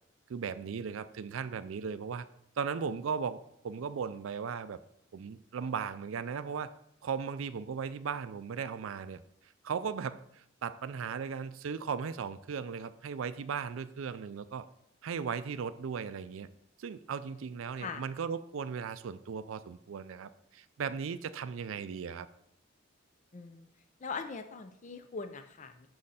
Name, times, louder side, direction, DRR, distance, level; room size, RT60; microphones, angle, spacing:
voice 1, 0.3-2.3 2.6-4.8 5.1-6.7 7.0-9.2 9.6-14.6 15.0-16.5 16.8-22.3, right 6 dB, 85° right, 12 dB, 0.4 m, -37 dB
voice 2, 23.3-23.7 24.0-25.9, left 4 dB, 40° left, 8 dB, 0.5 m, -41 dB
6.5 x 6.3 x 5.5 m, 0.75 s
head